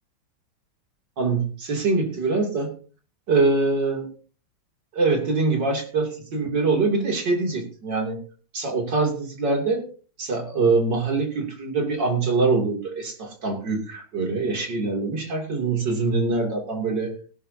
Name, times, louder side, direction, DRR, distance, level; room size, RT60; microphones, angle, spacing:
voice 1, 1.2-2.7 3.3-4.1 4.9-8.2 8.5-9.8 10.2-17.1, right 3 dB, 60° right, 2 dB, 3.6 m, -24 dB
17.5 x 12.0 x 2.8 m, 0.39 s
omnidirectional pair, 2.2 m